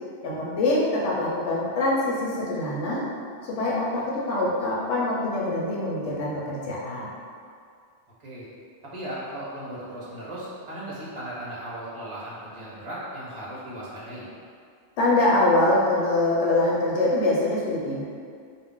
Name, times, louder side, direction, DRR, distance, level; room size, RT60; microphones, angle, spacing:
voice 1, 0.2-3.0 3.4-7.1 15.0-18.0, left 2 dB, 75° left, -5 dB, 0.9 m, -24 dB
voice 2, 8.9-14.3, right 1 dB, 35° right, -8 dB, 0.6 m, -37 dB
2.4 x 2.0 x 3.6 m, 2.2 s
omnidirectional pair, 1.2 m